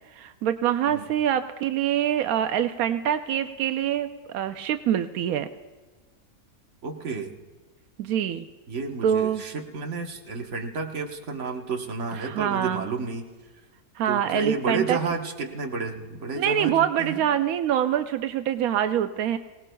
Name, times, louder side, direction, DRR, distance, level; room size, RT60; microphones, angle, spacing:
voice 1, 0.1-5.5 8.0-8.5 9.0-9.4 12.1-12.8 14.0-15.0 16.4-19.4, right 10 dB, 90° right, 9 dB, 1.1 m, -25 dB
voice 2, 6.8-7.3 8.7-13.3 14.1-17.2, right 4 dB, 60° right, 3 dB, 1.4 m, -31 dB
24.0 x 18.5 x 2.3 m, 1.3 s
omnidirectional pair, 1.5 m